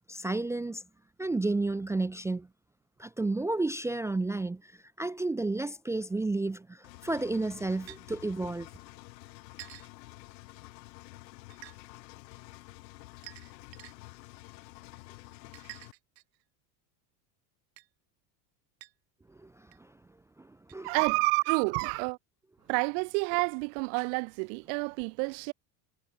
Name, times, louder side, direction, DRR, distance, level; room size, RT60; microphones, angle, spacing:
voice 1, 0.1-0.8 1.2-2.5 3.0-4.7 5.0-8.7 19.4-19.9 20.4-20.9, right 2 dB, 5° right, 0.5 m, -32 dB
Engine, 6.8-15.9, left 21 dB, 85° left, 5.9 m, -50 dB
sound 1, 7.9-8.0 9.6-9.9 11.5-11.8 13.2-13.9 15.5-16.4 17.8-17.9 18.8-18.9 19.7-19.8 20.7-20.8, right 20 dB, 90° right, 7.9 m, -48 dB
voice 2, 20.8-22.2 22.7-25.5, right 40 dB or more, 65° right, 1.4 m, -29 dB
cardioid pair, 150°, 49 cm